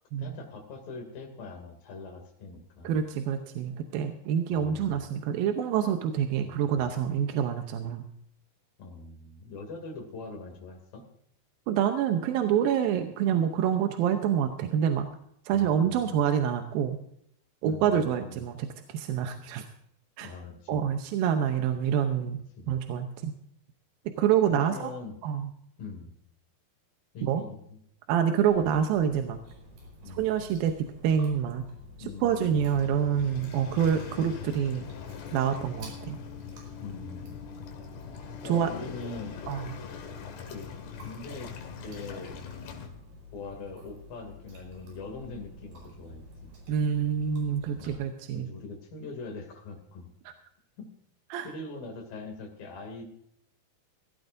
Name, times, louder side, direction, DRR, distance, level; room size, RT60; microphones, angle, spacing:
voice 1, 0.2-3.0 4.5-5.0 6.4-6.9 8.8-11.1 15.5-16.3 17.6-18.5 20.2-20.8 22.6-22.8 24.5-25.2 25.8-26.1 27.1-27.8 30.0-30.3 32.0-32.6 32.9-33.1 36.8-37.5 38.4-39.4 40.5-40.7 41.0-41.5 41.8-42.4 43.3-46.5 47.8-50.1 50.8-50.9 51.4-53.0, left 3 dB, 60° left, 3 dB, 4.2 m, -42 dB
voice 2, 2.8-8.0 11.7-15.1 15.5-17.0 17.6-19.6 20.2-20.3 20.7-22.4 22.7-23.3 24.2-24.9 25.2-25.5 27.2-27.4 28.1-29.4 30.1-31.7 32.2-34.9 35.3-36.2 38.4-38.7 39.5-39.7 46.7-48.5 51.3-51.5, right 8 dB, 75° right, 6 dB, 2.4 m, -27 dB
Chewing mastication, 28.5-47.9, left 1 dB, 55° right, 6.0 m, -49 dB
Waves surf, 32.6-42.9, left 7 dB, 90° left, 4.0 m, -42 dB
17.0 x 16.0 x 2.6 m, 0.71 s
omnidirectional pair, 4.8 m